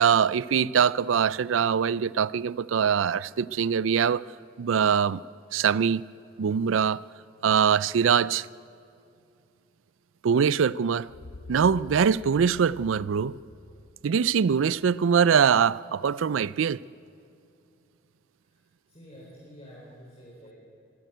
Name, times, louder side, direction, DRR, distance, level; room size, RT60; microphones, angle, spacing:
voice 1, 0.0-4.2 4.6-5.2 5.5-6.0 6.4-7.0 7.4-8.5 10.2-11.1 11.5-13.4 14.0-16.8, right 7 dB, 85° right, 0.4 m, -23 dB
sound 1, 11.1-14.9, left 2 dB, 70° left, 0.8 m, -47 dB
voice 2, 18.9-20.5, equal, 35° left, 4.2 m, -48 dB
23.5 x 12.0 x 9.2 m
head